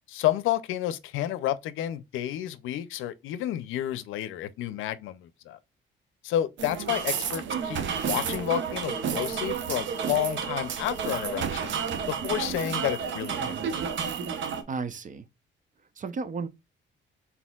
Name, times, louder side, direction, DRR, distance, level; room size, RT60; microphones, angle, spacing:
voice 1, 0.1-5.6 6.2-11.7 12.1-13.6, left 12 dB, 85° left, 0.5 m, -30 dB
sound 1, 6.6-14.6, right 7 dB, 70° right, 1.0 m, -31 dB
voice 2, 13.4-13.7 14.7-15.3 16.0-16.5, right 4 dB, 40° right, 0.8 m, -34 dB
4.2 x 4.1 x 2.3 m
cardioid pair, 90°, 20 cm